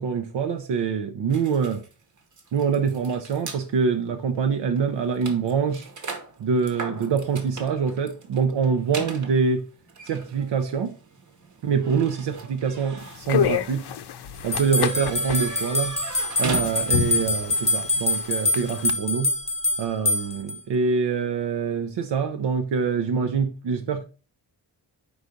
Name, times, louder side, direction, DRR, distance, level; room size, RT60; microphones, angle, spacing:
voice 1, 0.0-1.8 2.5-5.9 6.4-9.6 10.1-11.0 11.6-13.9 14.4-16.0 16.4-19.3 19.8-24.0, right 6 dB, 85° right, 0.8 m, -25 dB
sound 1, 1.3-3.6 4.4-4.5 4.8-17.2, right 4 dB, 45° right, 1.1 m, -39 dB
sound 2, 13.0-18.9, left 10 dB, 70° left, 0.6 m, -30 dB
sound 3, 14.5-20.6, left 2 dB, 15° left, 0.5 m, -25 dB
4.9 x 4.0 x 5.0 m
wide cardioid pair, 160°, 41 cm